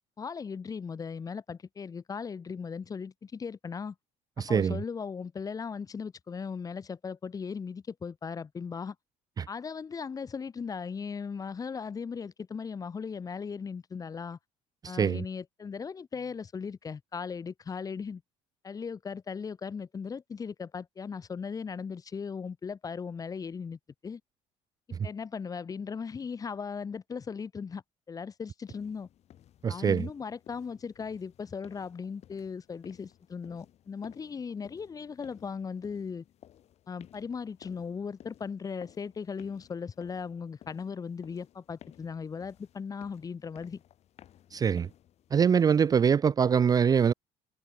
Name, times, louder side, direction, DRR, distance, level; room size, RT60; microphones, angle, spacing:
voice 1, 0.2-3.9 4.4-8.9 9.5-14.4 14.8-18.2 18.6-24.2 25.0-27.8 28.1-29.1 29.7-36.2 36.9-43.8, left 6 dB, 25° left, 1.6 m, -38 dB
voice 2, 4.4-4.8 9.4-9.5 14.8-15.2 29.6-30.1 44.5-44.9 45.3-47.1, right 7 dB, 25° right, 0.6 m, -24 dB
sound 1, 28.7-45.9, left 11 dB, 50° left, 3.7 m, -57 dB
cardioid pair, 135°, 14 cm